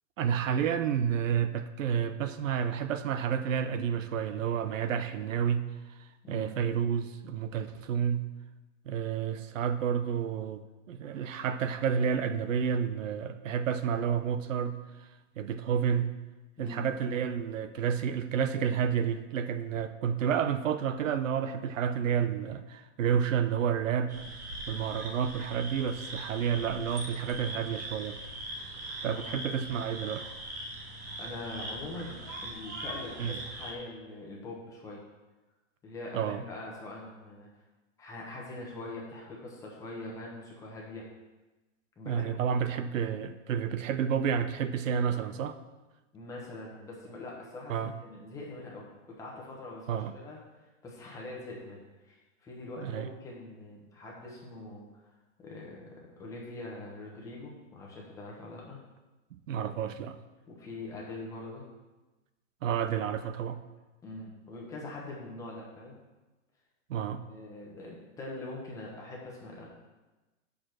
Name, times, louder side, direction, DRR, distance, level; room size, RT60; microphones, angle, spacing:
voice 1, 0.2-5.6 6.0-8.2 8.9-15.1 15.4-16.1 16.6-24.1 24.7-28.2 29.0-30.3 33.2-33.4 36.1-36.4 42.0-45.6 47.7-47.9 49.9-50.1 52.8-53.1 59.5-60.2 62.6-63.6 66.9-67.2, right 8 dB, 85° right, 11 dB, 0.8 m, -30 dB
sound 1, 24.1-33.7, right 1 dB, 15° right, 0.4 m, -41 dB
voice 2, 31.2-35.0 35.8-37.5 38.0-41.1 42.0-42.3 46.1-50.4 50.8-55.1 55.4-58.8 60.5-61.6 64.0-66.0 67.2-69.7, left 2 dB, 10° left, -3 dB, 1.0 m, -43 dB
6.9 x 5.0 x 6.0 m, 1.1 s
supercardioid pair, 170°, 38 cm